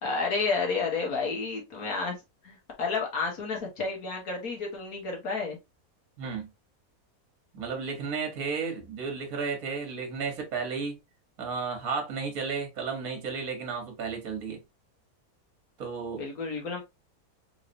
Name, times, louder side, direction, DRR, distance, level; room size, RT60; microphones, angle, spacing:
voice 1, 0.0-2.2 2.4-5.6 16.2-16.8, left 4 dB, 80° left, 1.8 m, -31 dB
voice 2, 6.2-6.5 7.5-11.0 11.4-14.6 15.8-16.2, right 5 dB, 75° right, 1.6 m, -33 dB
4.0 x 3.1 x 2.6 m
omnidirectional pair, 1.5 m